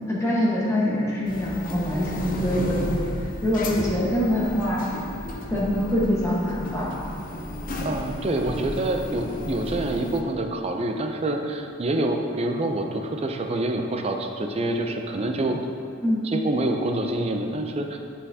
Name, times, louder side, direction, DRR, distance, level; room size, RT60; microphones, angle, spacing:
voice 1, 0.1-3.1 3.4-4.8 5.5-6.9 16.0-16.2, equal, 15° left, -6 dB, 1.2 m, -24 dB
sound 1, 1.2-10.2, left 1 dB, 40° left, 0.5 m, -33 dB
voice 2, 7.8-15.6 16.2-18.0, right 1 dB, 30° right, 4 dB, 0.4 m, -26 dB
8.2 x 5.7 x 2.7 m, 2.4 s
head